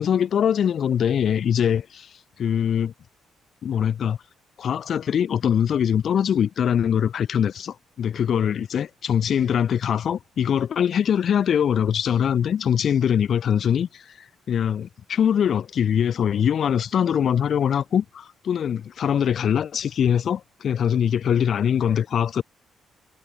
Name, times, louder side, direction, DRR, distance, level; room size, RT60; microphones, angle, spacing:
voice 1, 0.0-2.1 2.4-2.9 3.6-4.2 4.6-14.0 14.5-22.4, left 8 dB, 60° left, 2.4 m, -22 dB
cardioid pair, 90°, 0 cm